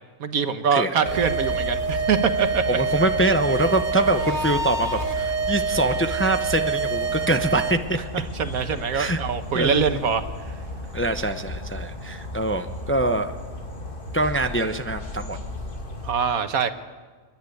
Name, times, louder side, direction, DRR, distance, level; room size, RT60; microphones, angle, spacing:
voice 1, 0.2-2.6 8.1-10.2 16.0-16.7, right 6 dB, 80° right, 9 dB, 1.6 m, -24 dB
voice 2, 0.7-1.2 2.7-8.0 8.9-9.2 9.5-10.0 10.9-13.3 14.1-15.4, right 1 dB, 15° left, 7 dB, 0.6 m, -24 dB
sound 1, 1.0-16.1, left 2 dB, 40° left, 2.3 m, -35 dB
sound 2, 1.0-7.7, right 5 dB, 40° right, 1.0 m, -27 dB
28.5 x 10.5 x 9.7 m, 1.5 s
omnidirectional pair, 1.5 m